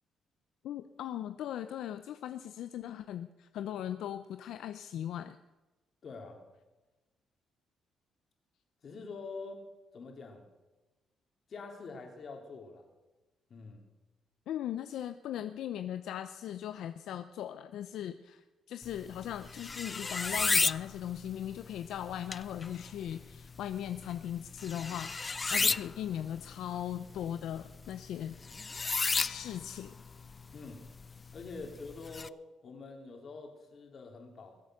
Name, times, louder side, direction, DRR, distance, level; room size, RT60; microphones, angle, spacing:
voice 1, 0.6-5.4 14.5-25.1 25.5-28.3 29.2-29.9, left 10 dB, 80° left, 10 dB, 0.6 m, -39 dB
voice 2, 6.0-6.4 8.8-9.6 9.9-10.5 11.5-12.9 13.5-13.9 25.5-25.8 30.5-30.8 31.3-32.4 32.6-34.7, left 4 dB, 50° left, 2 dB, 3.6 m, -45 dB
sound 1, 18.8-32.3, left 4 dB, 30° left, 0.4 m, -35 dB
22.0 x 8.1 x 6.5 m, 1.1 s
cardioid pair, 90°, 0 cm